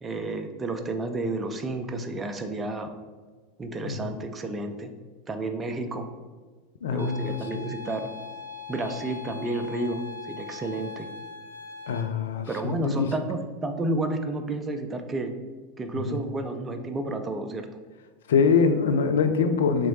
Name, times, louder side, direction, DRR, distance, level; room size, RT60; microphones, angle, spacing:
voice 1, 0.0-2.9 3.6-4.9 5.3-6.1 6.9-8.0 8.7-11.1 12.5-15.3 15.8-17.7, right 2 dB, 20° right, 6 dB, 0.4 m, -31 dB
voice 2, 6.8-7.7 11.9-13.1 16.1-16.2 18.3-19.9, left 5 dB, 65° left, 7 dB, 0.3 m, -24 dB
sound 1, 7.0-12.0, left 5 dB, 90° right, 0.5 m, -40 dB
3.7 x 3.0 x 3.0 m, 1.4 s
figure-of-eight pair, 85°, 0 cm